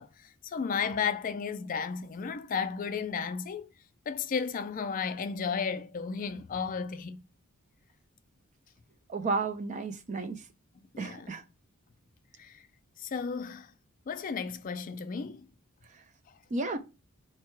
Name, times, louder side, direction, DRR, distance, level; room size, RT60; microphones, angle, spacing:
voice 1, 0.0-3.7 4.1-7.2 10.9-11.3 12.4-12.6 13.0-13.7 14.1-15.5, left 6 dB, 40° left, 0.4 m, -34 dB
voice 2, 9.1-10.4 11.0-11.4 16.5-16.8, right 3 dB, 35° right, 0.4 m, -32 dB
4.5 x 2.2 x 4.5 m
head